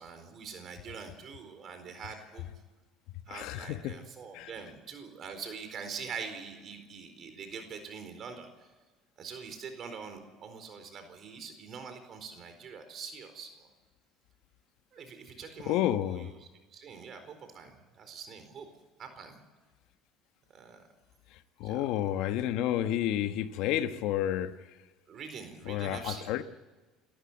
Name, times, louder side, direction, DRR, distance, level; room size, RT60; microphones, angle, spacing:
voice 1, 0.0-2.5 3.3-8.7 9.2-13.7 14.9-18.7 19.0-19.4 20.5-20.8 21.6-21.8 25.1-26.3, right 6 dB, 50° right, 4.3 m, -44 dB
voice 2, 3.3-3.9 4.3-4.5 15.7-16.3 21.6-24.5 25.7-26.4, left 12 dB, 75° left, 1.2 m, -30 dB
27.5 x 14.0 x 8.1 m
supercardioid pair, 95°, 0 cm